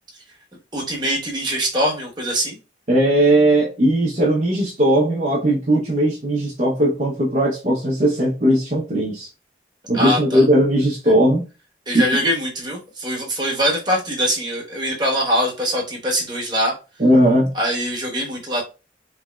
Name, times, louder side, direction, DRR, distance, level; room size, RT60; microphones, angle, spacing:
voice 1, 0.7-2.6 9.9-10.4 11.9-16.7 17.5-18.6, equal, 25° right, -2 dB, 1.1 m, -23 dB
voice 2, 2.9-9.3 9.9-11.5 11.9-12.0 17.0-17.5, right 1 dB, 40° right, -5 dB, 0.7 m, -18 dB
3.3 x 3.0 x 2.2 m, 0.30 s
head